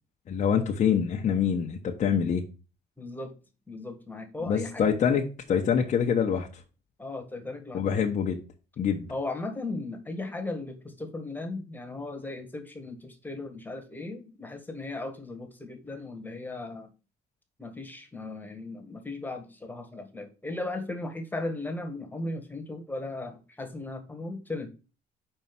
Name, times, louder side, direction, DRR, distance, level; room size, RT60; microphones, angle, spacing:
voice 1, 0.3-2.4 4.5-6.5 7.7-8.4 8.8-9.1, left 7 dB, 45° left, 1.1 m, -25 dB
voice 2, 3.0-3.3 3.7-4.8 7.0-7.8 9.1-16.9 17.6-24.7, left 2 dB, 10° left, 1.7 m, -37 dB
5.6 x 4.5 x 6.0 m
cardioid pair, 110°, 17 cm